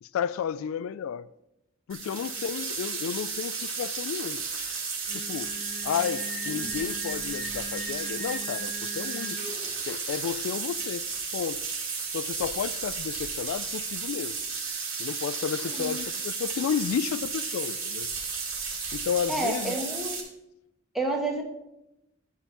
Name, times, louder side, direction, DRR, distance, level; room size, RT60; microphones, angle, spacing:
voice 1, 0.0-1.3 1.9-4.5 5.1-5.5 5.8-9.4 9.9-11.1 11.3-11.6 12.1-14.3 15.0-18.1 18.9-19.8, left 7 dB, 90° left, 0.3 m, -32 dB
sound 1, 1.9-20.2, right 5 dB, 90° right, 2.6 m, -33 dB
Singing, 5.1-9.8, right 1 dB, 60° left, 3.3 m, -40 dB
voice 2, 19.3-20.2 20.9-21.4, right 2 dB, ahead, 1.3 m, -30 dB
12.5 x 4.3 x 5.9 m
head